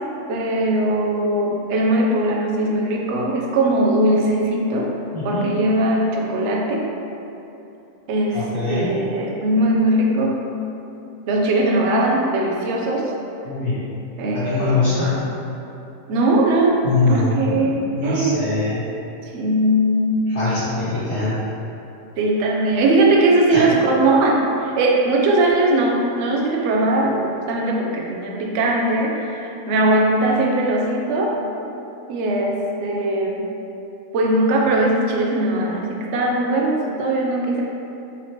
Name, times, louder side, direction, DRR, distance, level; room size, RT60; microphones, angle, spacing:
voice 1, 0.3-4.9 5.2-6.8 8.1-10.3 11.3-13.1 14.2-14.8 16.1-16.8 17.1-18.5 19.2-20.2 22.2-31.4 32.1-33.4 34.1-37.6, right 1 dB, 65° right, -1 dB, 0.7 m, -20 dB
voice 2, 5.1-5.5 8.3-8.9 13.4-13.8 14.3-15.2 16.8-17.7 17.9-18.9 20.3-21.4 23.5-23.7, left 3 dB, 80° left, -12 dB, 1.4 m, -22 dB
4.0 x 2.9 x 3.0 m, 2.9 s
omnidirectional pair, 1.6 m